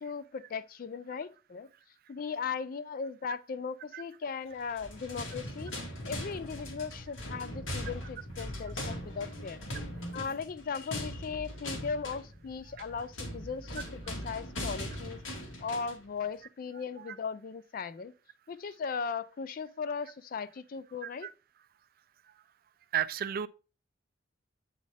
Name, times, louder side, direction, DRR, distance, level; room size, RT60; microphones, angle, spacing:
voice 1, 0.0-1.7 2.1-5.7 6.1-9.6 10.1-15.2 15.6-18.1 18.5-21.3, left 5 dB, 45° left, 0.4 m, -38 dB
sound 1, 4.6-16.0, left 1 dB, 90° left, 2.0 m, -40 dB
voice 2, 22.9-23.5, right 9 dB, 50° right, 0.4 m, -31 dB
8.4 x 4.2 x 3.4 m
head